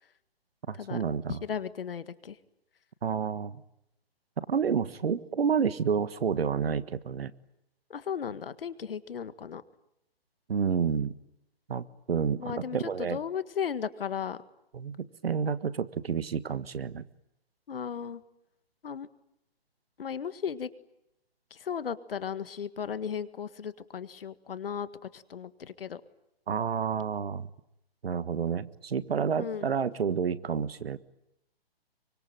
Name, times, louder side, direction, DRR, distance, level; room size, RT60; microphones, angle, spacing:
voice 1, 0.7-1.4 3.0-3.6 4.4-7.3 10.5-11.1 11.7-13.2 14.7-17.0 26.5-27.5 28.0-31.0, right 6 dB, 70° right, 15 dB, 1.5 m, -29 dB
voice 2, 1.3-2.4 7.9-9.6 12.4-14.4 17.7-18.2 18.8-19.1 20.0-20.7 21.5-26.0 29.4-29.6, left 7 dB, 65° left, 13 dB, 1.8 m, -35 dB
25.0 x 24.5 x 9.2 m, 0.82 s
hypercardioid pair, 145°, 31 cm